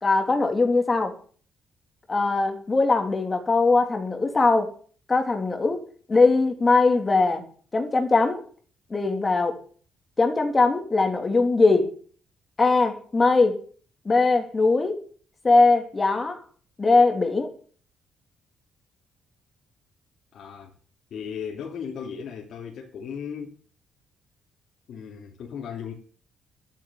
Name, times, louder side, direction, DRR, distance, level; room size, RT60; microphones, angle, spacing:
voice 1, 0.0-1.2 2.1-4.7 5.1-5.8 6.1-7.5 7.7-8.4 8.9-9.6 10.2-11.9 12.6-13.6 14.0-15.0 15.4-16.4 16.8-17.5, left 3 dB, 30° left, 3.3 m, -21 dB
voice 2, 20.3-20.7 21.1-23.6 24.9-25.9, left 7 dB, 65° left, 2.9 m, -36 dB
12.0 x 8.9 x 9.7 m
cardioid pair, 90°, 0 cm